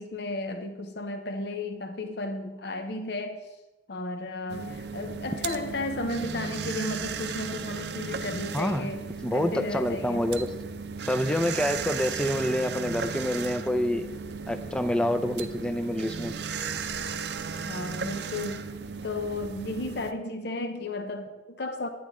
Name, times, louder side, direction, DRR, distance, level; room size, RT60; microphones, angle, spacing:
voice 1, 0.0-3.5 3.9-10.4 17.5-18.7 19.0-21.9, left 2 dB, 60° left, 7 dB, 0.8 m, -34 dB
sound 1, 4.5-20.1, right 5 dB, 60° right, 0.6 m, -35 dB
voice 2, 8.5-8.9 9.2-10.7 11.1-14.1 14.5-16.4, left 1 dB, 5° left, 8 dB, 0.5 m, -27 dB
11.0 x 9.3 x 3.7 m, 1.1 s
head